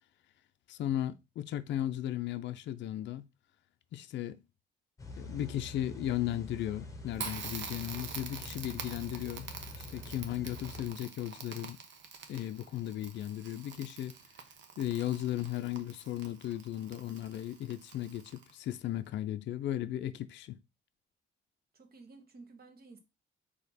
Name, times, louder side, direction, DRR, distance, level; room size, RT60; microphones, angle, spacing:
voice 1, 0.7-3.3 3.9-4.4 5.2-9.5 9.8-11.8 12.3-14.2 14.8-20.6, left 12 dB, 65° left, 0.4 m, -36 dB
sound 1, 5.0-10.9, left 2 dB, 15° left, 1.0 m, -46 dB
Crackle, 7.1-18.7, right 6 dB, 70° right, 0.9 m, -46 dB
voice 2, 21.7-23.0, right 3 dB, 50° right, 1.2 m, -53 dB
4.3 x 2.9 x 4.1 m
cardioid pair, 90°, 20 cm